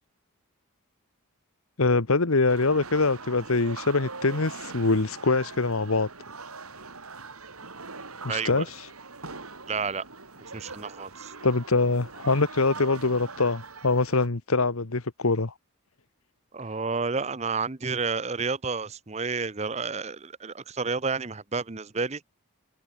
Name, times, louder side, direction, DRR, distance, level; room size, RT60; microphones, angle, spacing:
voice 1, 1.8-6.1 8.2-8.9 11.4-15.5, left 3 dB, 80° left, 1.3 m, -24 dB
sound 1, 2.5-14.3, right 4 dB, 90° right, 6.1 m, -42 dB
voice 2, 8.3-8.6 9.7-10.0 10.5-11.3 16.5-22.2, right 4 dB, 30° right, 0.7 m, -30 dB
open air
head